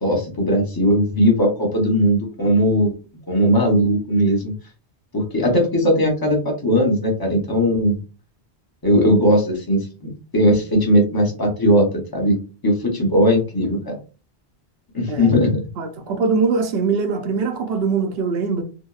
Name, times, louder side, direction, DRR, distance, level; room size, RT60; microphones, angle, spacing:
voice 1, 0.0-2.9 3.3-4.5 5.1-8.0 8.8-11.9 12.1-12.4 12.6-14.0 14.9-15.6, equal, 25° left, 0.7 m, -18 dB
voice 2, 15.8-18.6, right 5 dB, 70° right, 0.8 m, -22 dB
2.7 x 2.0 x 2.3 m
omnidirectional pair, 1.1 m